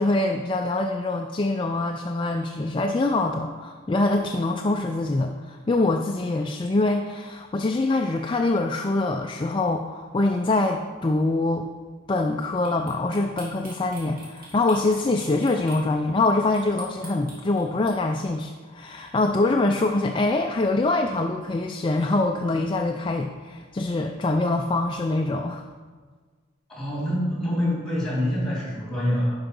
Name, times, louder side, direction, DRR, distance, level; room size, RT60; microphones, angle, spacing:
voice 1, 0.0-11.7 12.1-25.6, left 2 dB, 25° left, 4 dB, 0.4 m, -24 dB
sound 1, 12.6-15.8 16.5-17.9, right 2 dB, 45° right, 3.0 m, -44 dB
voice 2, 26.7-29.3, left 1 dB, 5° left, -5 dB, 3.1 m, -25 dB
11.5 x 4.8 x 5.3 m, 1.5 s
head